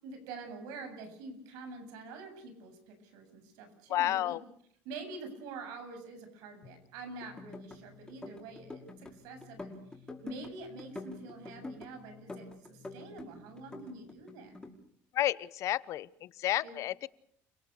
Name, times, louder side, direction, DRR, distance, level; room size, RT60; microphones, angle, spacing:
voice 1, 0.0-4.4 4.8-9.7 10.2-14.6 16.6-16.7, right 3 dB, 80° right, 7 dB, 7.7 m, -46 dB
voice 2, 3.9-4.4 15.1-17.1, left 13 dB, 60° left, 19 dB, 1.0 m, -31 dB
sound 1, 6.6-14.2, left 10 dB, 40° left, 3.2 m, -60 dB
sound 2, 7.2-7.8 8.1-9.1 9.4-10.5 10.8-11.9 12.3-13.3 13.6-14.7, left 2 dB, 10° left, 5.6 m, -45 dB
29.5 x 18.0 x 6.7 m, 0.67 s
cardioid pair, 110°, 6 cm